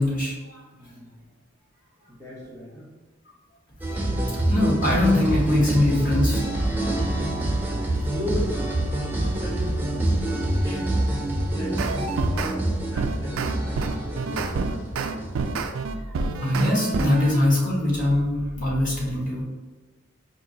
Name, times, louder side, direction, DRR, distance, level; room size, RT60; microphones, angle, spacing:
voice 1, 0.0-0.6 3.9-6.4 16.4-19.5, left 1 dB, 40° left, -4 dB, 1.1 m, -22 dB
voice 2, 0.7-1.4 2.1-2.9 8.1-11.0 11.3-15.2, equal, 15° left, -9 dB, 0.9 m, -37 dB
sound 1, 3.8-15.7, right 1 dB, 10° right, 0.4 m, -26 dB
sound 2, 11.8-12.5 13.0-17.4, right 4 dB, 75° right, 0.3 m, -28 dB
4.5 x 2.7 x 2.7 m, 1.3 s
head